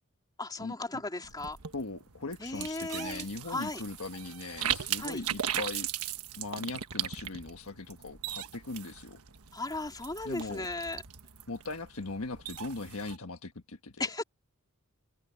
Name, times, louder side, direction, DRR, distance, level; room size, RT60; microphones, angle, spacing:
voice 1, 0.4-1.6 2.4-3.8 5.0-5.2 9.5-11.0 14.0-14.2, left 2 dB, 20° left, 3.8 m, -36 dB
sound 1, 1.2-13.2, right 10 dB, 80° right, 1.3 m, -38 dB
voice 2, 1.7-5.9 6.4-9.2 10.2-10.7 11.5-14.1, left 3 dB, 70° left, 1.5 m, -39 dB
head